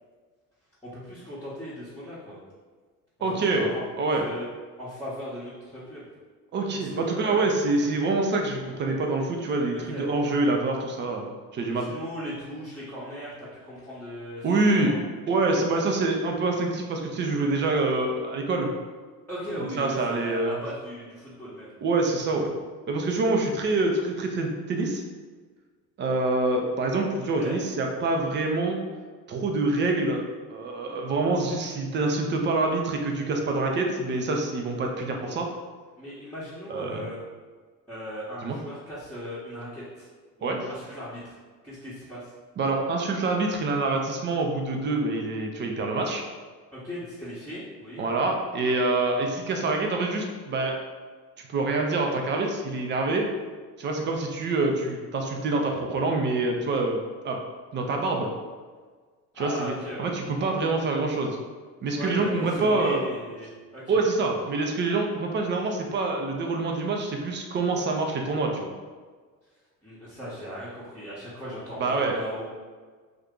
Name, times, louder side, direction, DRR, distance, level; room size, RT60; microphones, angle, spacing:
voice 1, 0.8-2.4 3.2-4.5 4.8-6.0 6.7-7.4 9.9-10.1 11.7-15.0 19.3-21.7 27.4-27.6 36.0-37.2 37.9-40.1 40.4-41.3 41.6-42.3 46.7-48.0 59.3-60.1 62.0-64.0 69.8-72.4, equal, 5° left, -12 dB, 0.9 m, -38 dB
voice 2, 3.2-4.3 6.5-11.9 14.4-14.9 15.3-18.7 19.8-20.6 21.8-22.5 22.9-25.0 26.0-28.8 29.3-35.5 36.7-37.1 38.4-38.6 40.4-40.6 42.6-46.2 48.0-50.8 51.5-53.3 53.8-57.0 57.2-57.4 57.7-58.3 59.4-59.7 60.0-61.4 61.8-63.0 63.9-68.7 71.8-72.2, right 2 dB, 25° right, 2 dB, 0.4 m, -26 dB
2.7 x 2.4 x 3.6 m, 1.5 s
figure-of-eight pair, 60°, 50 cm